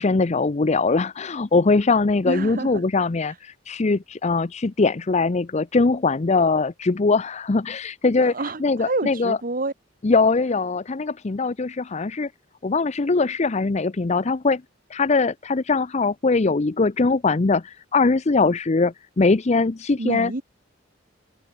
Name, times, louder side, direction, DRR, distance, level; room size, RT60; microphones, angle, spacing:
voice 1, 0.0-8.3 8.6-9.4 10.0-12.3 12.6-14.6 14.9-20.3, left 3 dB, 35° left, 0.6 m, -21 dB
voice 2, 2.2-2.8 3.3-3.4 8.2-9.7 20.0-20.4, right 2 dB, 45° right, 1.4 m, -28 dB
head